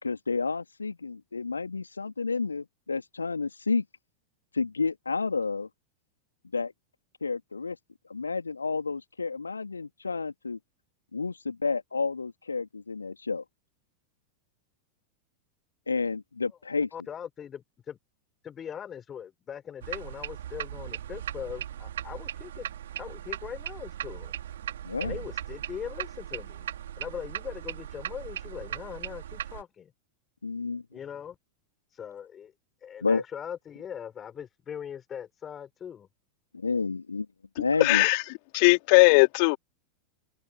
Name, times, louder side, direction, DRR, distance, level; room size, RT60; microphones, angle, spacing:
voice 1, 0.0-3.8 4.5-5.7 6.5-6.7 7.2-7.8 8.1-10.6 11.1-13.4 15.9-16.9 24.8-25.2 30.4-30.8 33.0-33.2 36.5-37.3 37.6-38.1, left 4 dB, 75° left, 3.1 m, -30 dB
voice 2, 16.9-18.0 18.4-22.7 23.0-24.3 25.0-26.7 27.0-29.9 30.9-31.4 31.9-32.5 32.8-36.1, left 8 dB, 25° left, 6.2 m, -40 dB
sound 1, 19.8-29.6, right 11 dB, 60° right, 3.3 m, -38 dB
voice 3, 37.8-38.2 38.5-39.6, left 32 dB, 45° left, 2.6 m, -19 dB
figure-of-eight pair, 90°, 0 cm